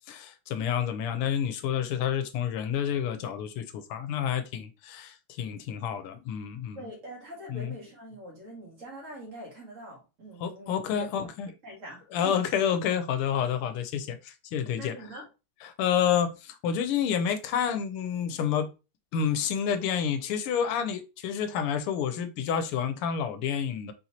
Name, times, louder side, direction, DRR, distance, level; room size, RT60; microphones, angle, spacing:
voice 1, 0.1-6.8 7.5-7.7 10.4-11.5 12.1-14.9 15.6-18.7 19.1-23.9, left 8 dB, 85° left, 1.5 m, -29 dB
voice 2, 6.8-11.3 11.6-12.4 14.8-15.3, equal, 40° right, 1.8 m, -44 dB
4.5 x 4.0 x 2.8 m
omnidirectional pair, 2.4 m